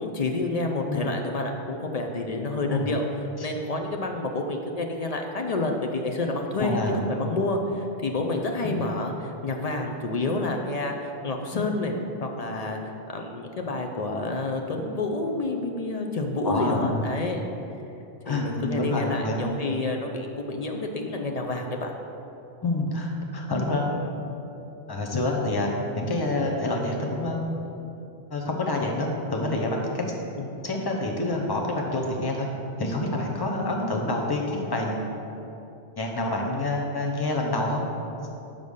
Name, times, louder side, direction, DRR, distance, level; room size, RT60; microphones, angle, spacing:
voice 1, 0.0-3.0 3.4-11.9 12.2-12.8 13.1-17.4 18.3-21.9 30.4-30.5, left 2 dB, 50° left, 3 dB, 0.5 m, -29 dB
voice 2, 6.6-7.1 8.6-8.8 11.5-11.7 16.4-17.0 18.3-19.5 22.6-24.0 24.9-27.5 28.3-30.0 30.6-32.5 32.8-35.1 36.0-37.8, left 2 dB, 25° left, 0 dB, 0.8 m, -27 dB
5.4 x 5.2 x 6.4 m, 2.8 s
omnidirectional pair, 1.1 m